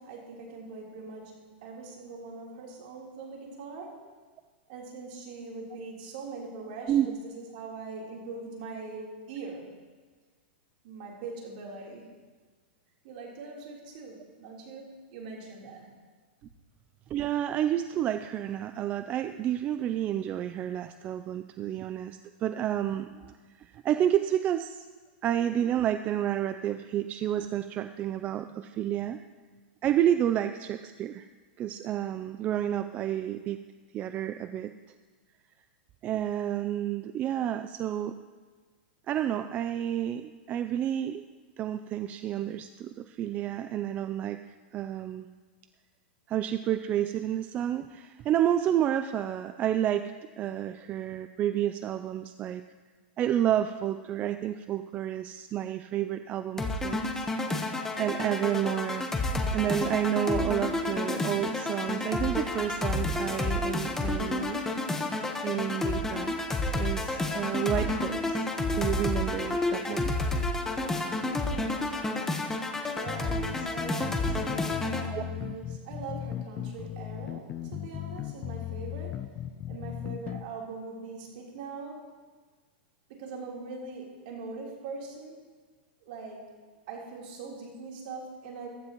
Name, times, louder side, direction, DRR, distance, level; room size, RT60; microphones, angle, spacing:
voice 1, 0.0-4.0 4.7-9.7 10.8-12.1 13.0-15.9 72.2-79.3 79.7-82.1 83.1-85.3 86.0-86.5 86.9-88.7, right 4 dB, 55° right, -2 dB, 3.5 m, -42 dB
voice 2, 17.1-23.3 23.6-24.9 25.2-29.2 29.8-31.3 31.6-33.6 33.9-34.7 36.0-38.2 39.1-41.2 41.6-45.3 46.3-52.6 53.2-57.3 58.0-59.1 59.5-64.6 65.4-66.4 66.7-68.5 68.8-70.1 75.1-75.2, right 11 dB, 25° right, 10 dB, 0.3 m, -30 dB
sound 1, 56.6-75.1, left 2 dB, 10° left, 1.0 m, -30 dB
sound 2, 73.1-80.4, left 12 dB, 30° left, 0.5 m, -37 dB
15.0 x 12.5 x 3.0 m, 1.5 s
hypercardioid pair, 140°, 6 cm